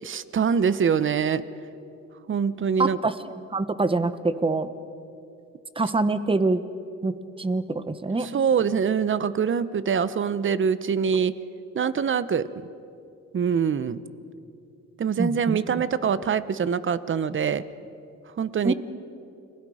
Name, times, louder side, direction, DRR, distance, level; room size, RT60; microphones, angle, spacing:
voice 1, 0.0-1.4 2.3-3.0 8.2-11.3 11.7-12.4 13.3-14.0 15.0-17.6 18.4-18.7, right 7 dB, 40° right, 15 dB, 0.9 m, -24 dB
voice 2, 2.8-3.1 3.5-4.7 5.8-6.6 7.0-7.1 7.4-8.3 15.2-15.6 18.6-18.7, right 3 dB, 15° right, 12 dB, 1.1 m, -24 dB
29.5 x 20.5 x 5.0 m, 2.7 s
cardioid pair, 90°, 30 cm